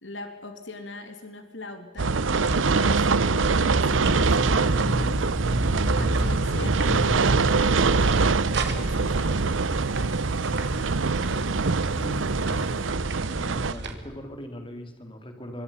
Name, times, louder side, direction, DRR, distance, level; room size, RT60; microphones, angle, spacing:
voice 1, 0.0-2.2 2.7-5.3 5.9-7.6 8.5-9.5, left 2 dB, 70° left, 7 dB, 2.9 m, -41 dB
sound 1, 2.0-13.9, right 2 dB, 60° right, 2.9 m, -36 dB
sound 2, 2.0-13.7, right 4 dB, 90° right, 0.8 m, -23 dB
sound 3, 4.0-12.9, equal, 5° left, 0.9 m, -33 dB
voice 2, 13.4-15.6, left 1 dB, 25° left, 5 dB, 3.5 m, -39 dB
26.5 x 24.0 x 5.7 m, 1.1 s
head